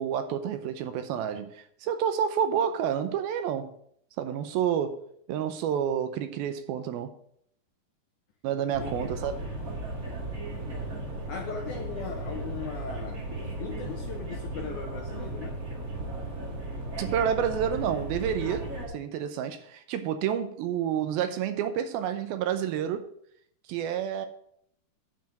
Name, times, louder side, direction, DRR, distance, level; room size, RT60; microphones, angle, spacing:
voice 1, 0.0-3.7 4.2-5.0 5.3-7.1 8.4-9.3 17.0-23.1 23.7-24.3, right 9 dB, 80° right, 2.5 m, -29 dB
sound 1, 8.7-18.9, right 2 dB, 35° right, 1.5 m, -36 dB
voice 2, 8.8-9.1 11.1-15.6, left 6 dB, 75° left, 1.9 m, -39 dB
9.3 x 5.0 x 7.5 m
omnidirectional pair, 4.6 m